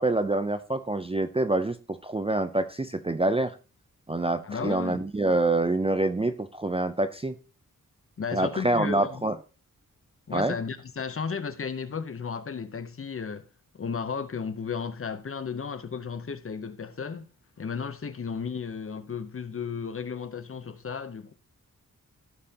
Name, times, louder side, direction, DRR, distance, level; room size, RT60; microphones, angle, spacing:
voice 1, 0.0-3.6 4.1-7.4 8.3-9.4 10.3-10.6, right 2 dB, 15° right, 0.4 m, -26 dB
voice 2, 4.4-5.0 8.2-9.2 10.3-13.5 13.7-17.3 17.6-21.3, left 6 dB, 40° left, 0.7 m, -34 dB
15.5 x 5.5 x 2.8 m
wide cardioid pair, 165°, 34 cm